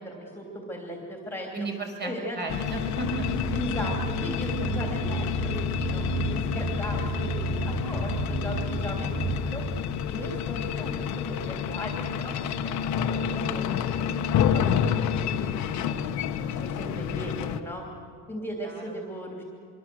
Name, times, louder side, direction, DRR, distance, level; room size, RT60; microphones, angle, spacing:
voice 1, 0.0-1.5 2.0-2.4 3.5-9.6 10.1-12.7 13.0-13.7 14.4-15.1 16.3-17.9 18.3-19.4, equal, 5° left, 0 dB, 3.0 m, -37 dB
voice 2, 1.5-3.3 18.6-19.0, right 2 dB, 30° right, 2 dB, 5.7 m, -34 dB
sound 1, 2.5-17.6, left 8 dB, 60° left, 1.3 m, -29 dB
sound 2, 3.0-9.8, right 5 dB, 50° right, 1.2 m, -33 dB
25.5 x 23.5 x 7.8 m, 2.4 s
cardioid pair, 155°, 33 cm